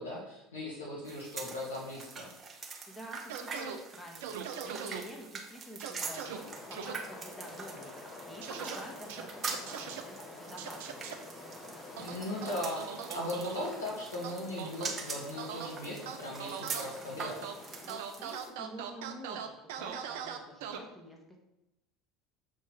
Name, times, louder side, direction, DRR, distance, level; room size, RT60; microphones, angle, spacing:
voice 1, 0.0-2.3 12.0-12.8 13.1-17.4, left 1 dB, 75° left, -5 dB, 1.6 m, -38 dB
sound 1, 1.0-18.5, right 4 dB, 30° right, 1.3 m, -44 dB
voice 2, 2.9-4.4 4.6-11.0 17.8-21.4, equal, 5° left, 0 dB, 1.9 m, -48 dB
sound 2, 3.3-3.8 4.2-5.0 5.8-6.4 6.7-6.9 8.4-8.8 9.1-10.0 10.6-11.1 12.0-13.7 14.2-14.9 15.4-15.7 16.1-16.9 17.2-17.5 17.9-20.8, right 8 dB, 60° right, 0.7 m, -40 dB
sound 3, 6.0-18.0, left 2 dB, 30° left, 1.4 m, -49 dB
7.0 x 4.6 x 4.6 m, 0.92 s
figure-of-eight pair, 70°, 0 cm